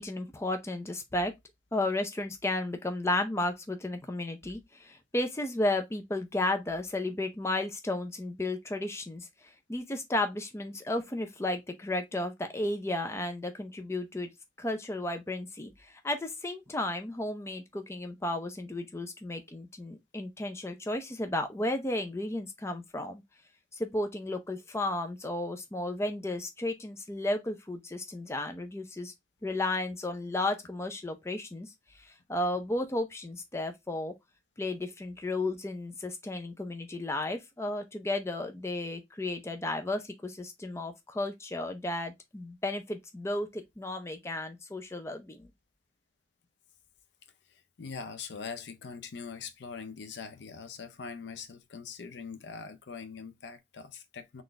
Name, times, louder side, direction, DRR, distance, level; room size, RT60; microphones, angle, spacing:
voice 1, 0.0-1.3 1.7-14.3 14.6-23.2 23.7-29.1 29.4-31.7 32.0-34.1 34.6-45.5, left 2 dB, 15° left, 0.5 m, -33 dB
voice 2, 47.5-54.4, left 5 dB, 75° left, 0.5 m, -42 dB
3.9 x 2.5 x 3.2 m
head